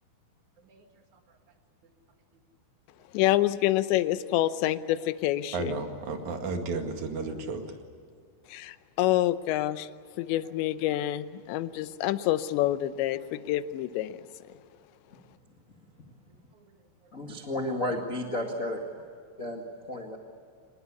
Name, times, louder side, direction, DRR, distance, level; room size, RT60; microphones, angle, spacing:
voice 1, 3.1-5.8 8.5-9.9 10.2-14.2, left 14 dB, 85° left, 13 dB, 3.1 m, -27 dB
voice 2, 5.5-7.6 13.2-13.3, right 3 dB, 50° right, 4 dB, 3.0 m, -33 dB
voice 3, 17.1-18.8 19.4-19.6 19.9-20.2, left 1 dB, 45° left, 1 dB, 1.0 m, -32 dB
26.0 x 20.5 x 8.4 m, 2.2 s
omnidirectional pair, 5.1 m